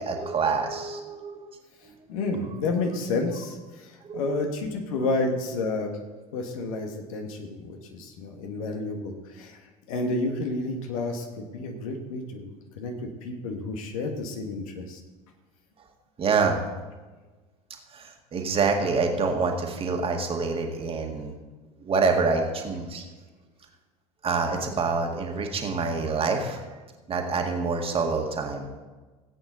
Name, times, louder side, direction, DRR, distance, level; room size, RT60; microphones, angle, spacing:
voice 1, 0.0-1.6 4.0-4.5 16.2-16.6 17.9-21.3 21.8-23.0 24.2-26.6 27.1-28.8, right 4 dB, 30° right, 3 dB, 1.9 m, -26 dB
voice 2, 2.1-5.9 6.3-9.6 9.9-15.0, left 3 dB, 60° left, 3 dB, 1.7 m, -30 dB
16.5 x 8.4 x 4.0 m, 1.3 s
figure-of-eight pair, 70°, 20 cm